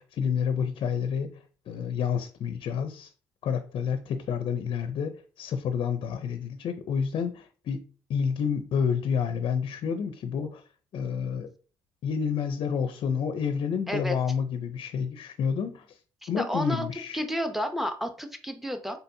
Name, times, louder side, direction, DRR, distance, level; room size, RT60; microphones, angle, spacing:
voice 1, 0.0-3.1 3.4-10.6 10.9-11.5 12.0-16.0 16.3-17.2, left 7 dB, 60° left, 0.5 m, -29 dB
voice 2, 16.2-16.9 17.1-19.0, equal, ahead, 0.7 m, -31 dB
4.1 x 3.9 x 2.7 m
cardioid pair, 85°, 10 cm